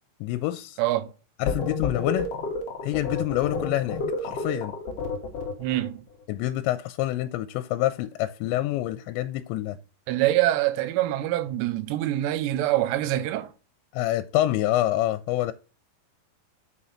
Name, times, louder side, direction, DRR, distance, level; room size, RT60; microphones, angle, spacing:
voice 1, 0.2-0.8 1.4-2.3 2.8-4.8 6.3-9.8 13.9-15.5, left 15 dB, 85° left, 2.8 m, -27 dB
voice 2, 0.8-1.1 5.6-6.0 10.1-13.5, right 14 dB, 85° right, 2.8 m, -25 dB
sound 1, 1.5-5.9, left 4 dB, 65° left, 1.6 m, -30 dB
6.2 x 5.5 x 5.7 m
omnidirectional pair, 5.1 m